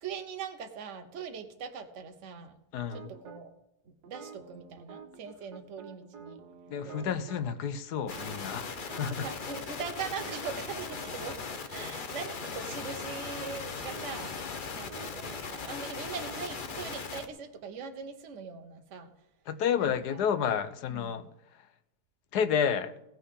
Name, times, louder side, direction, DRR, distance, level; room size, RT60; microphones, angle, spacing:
voice 1, 0.0-2.5 2.9-3.5 3.9-6.4 6.8-7.1 9.1-11.4 11.7-19.1 19.8-20.2 20.9-21.2, right 6 dB, 50° right, 6 dB, 1.2 m, -41 dB
voice 2, 2.7-3.1 6.7-8.7 8.9-9.3 19.5-21.3 22.3-22.9, left 7 dB, 75° left, 11 dB, 1.3 m, -30 dB
sound 1, 2.9-3.4 4.0-7.5 8.1-11.6 11.9-12.1 12.4-16.9, right 6 dB, 75° right, 1.6 m, -50 dB
sound 2, 8.1-17.3, left 5 dB, 40° left, 0.8 m, -39 dB
Boom, 12.5-17.9, left 4 dB, 60° left, 1.8 m, -55 dB
16.0 x 5.5 x 8.2 m, 0.86 s
omnidirectional pair, 1.8 m